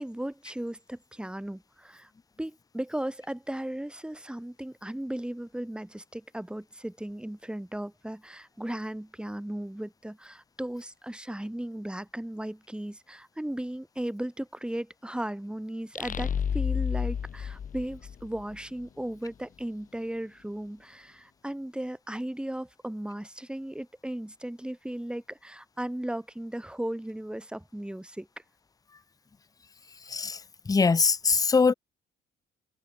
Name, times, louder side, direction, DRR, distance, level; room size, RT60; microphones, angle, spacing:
voice 1, 0.0-2.1 2.4-28.3, right 1 dB, 5° right, 1.9 m, -36 dB
sound 1, 15.9-18.6, left 7 dB, 40° left, 1.0 m, -30 dB
voice 2, 30.1-30.4 30.7-31.7, left 4 dB, 20° left, 0.5 m, -22 dB
cardioid pair, 90°, 20 cm